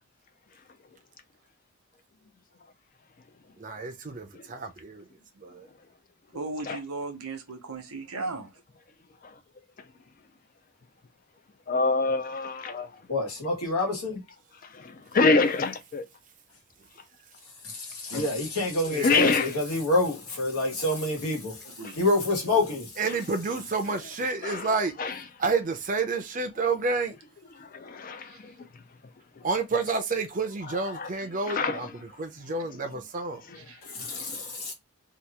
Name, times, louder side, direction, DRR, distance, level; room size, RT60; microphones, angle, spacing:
voice 1, 3.6-5.0 5.4-5.7 18.9-19.4 23.0-25.0 25.4-27.1 29.4-33.4, right 4 dB, 35° right, 0.5 m, -29 dB
voice 2, 6.3-8.5 21.7-22.0 28.2-28.4 33.5-33.8, right 3 dB, 75° right, 0.9 m, -36 dB
voice 3, 11.7-12.9 14.8-16.0 19.0-19.6 23.1-23.2 24.4-24.7 25.0-25.2 27.6-28.5 30.7-31.1 31.5-31.9 33.5-33.6 34.0-34.5, left 3 dB, 40° left, 0.4 m, -26 dB
voice 4, 13.1-14.2 18.0-21.5 22.0-22.9 34.1-34.3 34.6-34.7, left 2 dB, 85° left, 1.3 m, -27 dB
2.9 x 2.4 x 3.4 m
head